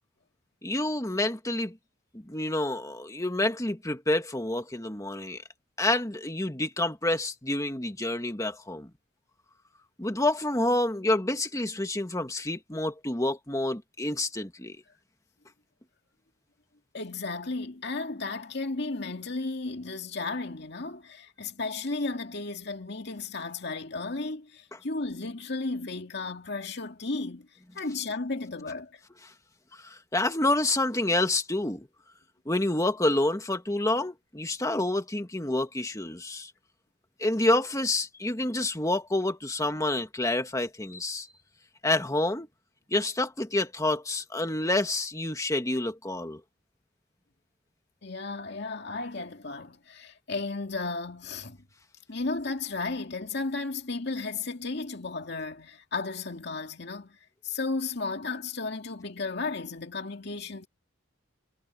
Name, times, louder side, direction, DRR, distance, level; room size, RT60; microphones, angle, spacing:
voice 1, 0.6-1.8 2.1-5.4 5.8-8.9 10.0-14.8 29.8-31.9 32.5-36.5 37.2-41.3 41.8-42.5 42.9-46.4, left 2 dB, 15° left, 1.9 m, -28 dB
voice 2, 16.9-27.5 27.7-29.0 48.0-51.6 52.1-60.7, left 3 dB, 60° left, 2.2 m, -34 dB
head